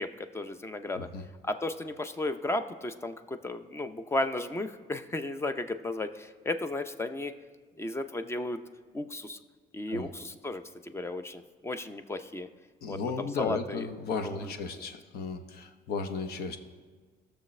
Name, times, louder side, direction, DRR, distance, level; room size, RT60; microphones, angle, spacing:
voice 1, 0.0-1.1 1.4-7.3 7.8-8.6 8.9-9.4 9.7-12.5 12.9-13.9 14.2-14.5, left 2 dB, 15° left, 10 dB, 0.6 m, -34 dB
voice 2, 1.0-1.3 9.9-10.1 12.8-16.6, left 4 dB, 70° left, 7 dB, 0.9 m, -35 dB
18.0 x 6.7 x 3.2 m, 1.5 s
cardioid pair, 110°, 17 cm